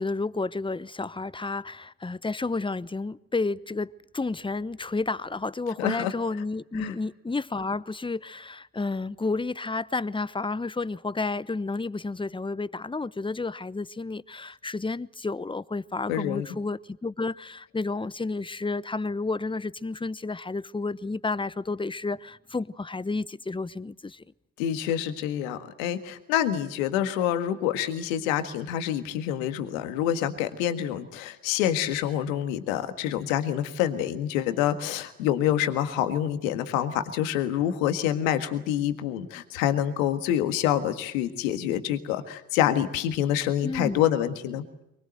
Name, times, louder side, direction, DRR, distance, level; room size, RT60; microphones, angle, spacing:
voice 1, 0.0-24.2 43.6-44.0, left 3 dB, 10° left, 1.0 m, -31 dB
voice 2, 5.8-6.1 6.8-6.9 16.1-16.5 24.6-44.6, left 11 dB, 80° left, 1.8 m, -27 dB
24.0 x 21.0 x 7.9 m
hypercardioid pair, 50°, 40 cm